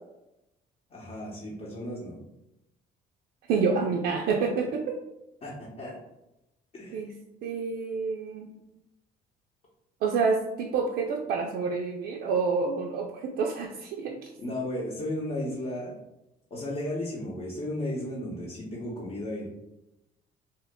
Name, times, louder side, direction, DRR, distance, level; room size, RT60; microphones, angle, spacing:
voice 1, 0.9-2.2 5.4-6.0 6.7-7.0 14.4-16.0 16.5-19.5, left 1 dB, 40° left, -5 dB, 0.8 m, -34 dB
voice 2, 3.5-5.0 6.9-7.1 7.4-8.5 10.0-14.2, right 5 dB, 75° right, 0 dB, 0.4 m, -28 dB
2.8 x 2.2 x 3.5 m, 0.90 s
cardioid pair, 110°, 17 cm